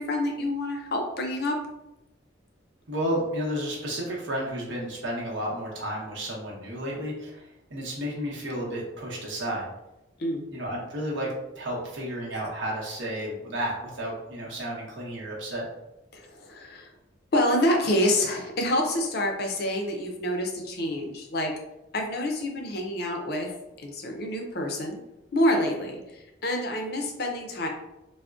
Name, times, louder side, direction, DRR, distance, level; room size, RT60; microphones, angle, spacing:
voice 1, 0.0-1.6 10.2-10.4 16.1-16.9 17.3-21.5 21.9-23.5 23.8-25.0 25.3-27.7, left 1 dB, 50° left, 2 dB, 0.4 m, -27 dB
voice 2, 2.9-9.7 10.5-15.7, equal, 70° right, -4 dB, 0.8 m, -32 dB
3.5 x 2.1 x 2.4 m, 0.94 s
head